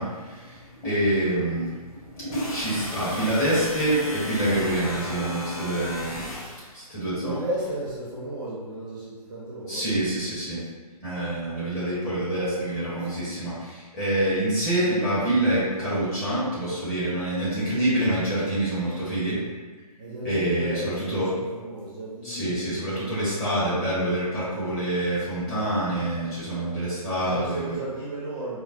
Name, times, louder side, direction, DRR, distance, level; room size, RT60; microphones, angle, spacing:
voice 1, 0.0-6.3 6.7-7.4 9.7-10.6 11.0-19.4 20.2-21.3 22.2-27.8, right 1 dB, 20° left, -11 dB, 1.3 m, -26 dB
sound 1, 2.3-6.7, left 1 dB, 60° left, 0.9 m, -36 dB
voice 2, 7.2-9.8 20.0-22.8 23.3-23.7 27.2-28.6, right 1 dB, 30° right, -7 dB, 0.7 m, -35 dB
4.2 x 2.1 x 2.5 m, 1.4 s
hypercardioid pair, 155°, 20 cm